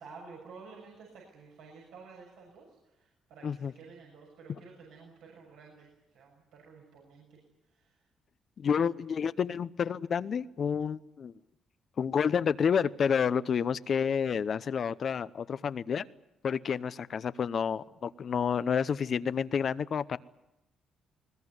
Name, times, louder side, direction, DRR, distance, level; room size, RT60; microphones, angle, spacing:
voice 1, 0.0-5.9 6.1-7.4 7.7-8.0, right 4 dB, 90° right, -3 dB, 6.6 m, -51 dB
voice 2, 8.6-11.3 12.0-16.0 16.4-20.2, left 7 dB, 55° left, 16 dB, 0.8 m, -29 dB
21.0 x 20.5 x 9.6 m, 0.93 s
cardioid pair, 90°, 0 cm